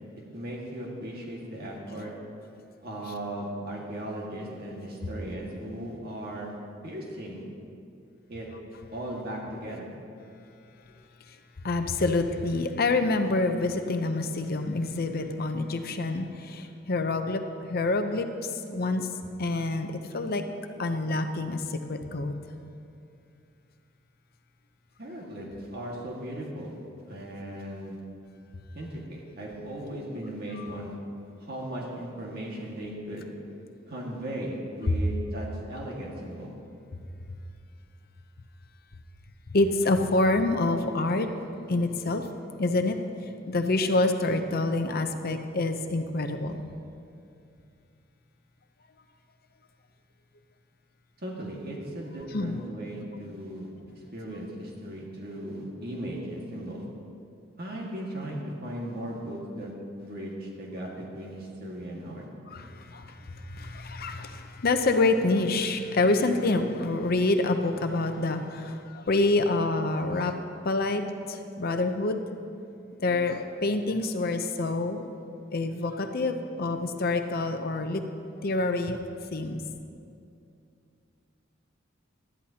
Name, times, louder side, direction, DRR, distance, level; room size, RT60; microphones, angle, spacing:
voice 1, 0.3-2.1 2.8-6.5 6.8-7.4 8.3-8.5 8.9-9.9 25.0-26.7 27.1-28.0 28.7-30.9 31.4-33.3 33.9-36.5 51.2-53.7 54.0-56.8 57.6-59.7 60.0-62.2, right 1 dB, 50° right, -3 dB, 1.9 m, -37 dB
voice 2, 11.6-19.1 19.4-20.4 20.8-22.4 30.6-30.7 34.9-35.0 39.5-41.3 41.7-42.3 42.6-43.0 43.2-46.6 52.3-52.6 62.5-70.4 70.6-72.2 73.0-75.1 75.5-78.0 78.4-79.0 79.3-79.6, left 2 dB, 50° left, 7 dB, 0.7 m, -27 dB
19.0 x 13.0 x 2.9 m, 2.5 s
head